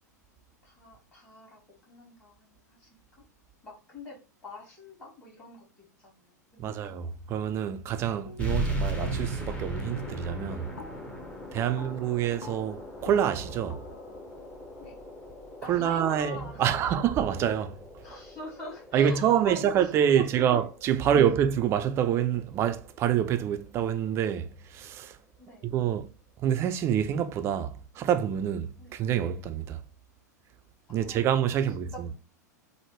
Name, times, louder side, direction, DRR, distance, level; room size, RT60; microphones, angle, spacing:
voice 1, 0.6-3.2 3.6-7.1 11.7-11.8 14.8-15.0 15.6-16.8 18.0-20.6 21.0-21.3 25.4-25.7 28.8-29.0 30.9-31.2 31.7-32.2, left 2 dB, 25° left, 1.3 m, -45 dB
voice 2, 6.6-10.7 11.5-13.8 15.7-17.8 18.9-25.2 25.6-26.1 26.4-29.8 30.9-32.1, right 9 dB, 25° right, 0.4 m, -27 dB
sound 1, 8.3-8.7 9.0-9.5 9.8-15.7, left 3 dB, 80° left, 0.5 m, -48 dB
sound 2, 8.4-23.5, right 1 dB, 10° left, 0.6 m, -38 dB
3.3 x 2.0 x 3.1 m
figure-of-eight pair, 90°, 10 cm